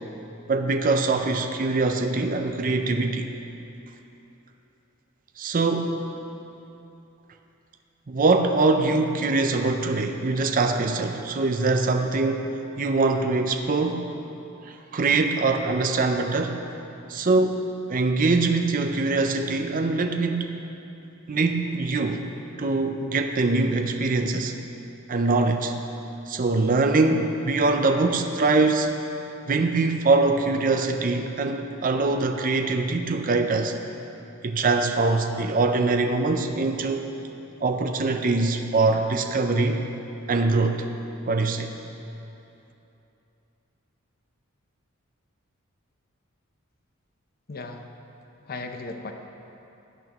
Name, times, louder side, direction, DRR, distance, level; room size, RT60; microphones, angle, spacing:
voice 1, 0.5-3.3 5.4-6.1 8.1-14.2 14.6-16.6 17.1-17.6 17.9-20.6 21.3-22.2 22.6-24.5 25.1-25.8 26.3-28.9 29.5-33.8 34.4-37.0 37.6-39.8 40.3-40.9 41.3-41.7, right 3 dB, 40° right, 5 dB, 0.5 m, -23 dB
voice 2, 47.5-47.9 48.5-49.1, left 3 dB, 45° left, 5 dB, 0.7 m, -36 dB
16.5 x 9.3 x 3.0 m, 2.9 s
head